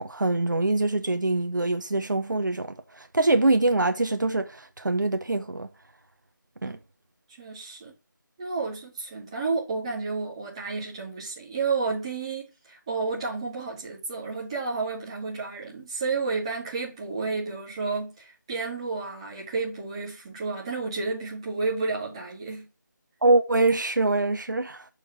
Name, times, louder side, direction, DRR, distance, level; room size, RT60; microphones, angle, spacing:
voice 1, 0.0-5.7 6.6-6.8 23.2-24.9, right 2 dB, 70° right, 0.9 m, -24 dB
voice 2, 7.4-7.9 8.4-22.7, right 4 dB, 15° right, 1.6 m, -31 dB
6.5 x 3.5 x 5.9 m
figure-of-eight pair, 165°, 11 cm